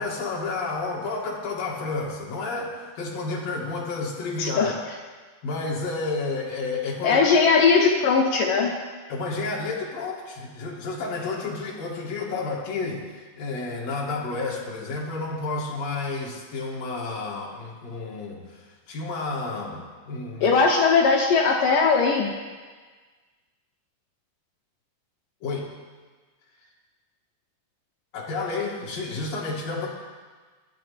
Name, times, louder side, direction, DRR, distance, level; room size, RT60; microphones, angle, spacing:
voice 1, 0.0-4.7 5.4-7.3 9.1-20.6 25.4-25.7 28.1-29.9, left 3 dB, 45° left, -4 dB, 2.9 m, -31 dB
voice 2, 4.4-4.7 7.0-8.7 20.4-22.3, left 5 dB, 80° left, 0 dB, 1.9 m, -19 dB
21.0 x 11.5 x 3.4 m, 1.4 s
omnidirectional pair, 5.2 m